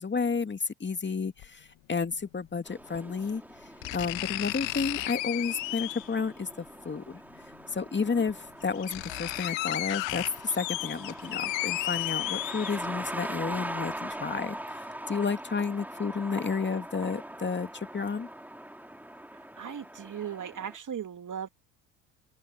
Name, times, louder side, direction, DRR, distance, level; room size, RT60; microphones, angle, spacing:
voice 1, 0.0-3.4 3.9-7.2 7.7-18.3, left 5 dB, 20° left, 2.3 m, -31 dB
sound 1, 1.4-1.5 2.9-3.0 3.8-6.2 7.5-7.6 8.3-8.4 8.6-13.1 13.5-13.6, left 20 dB, 60° left, 1.5 m, -33 dB
sound 2, 2.6-20.8, right 1 dB, 5° right, 2.5 m, -42 dB
voice 2, 19.6-21.5, right 8 dB, 35° right, 2.8 m, -37 dB
open air
hypercardioid pair, 65°, 50 cm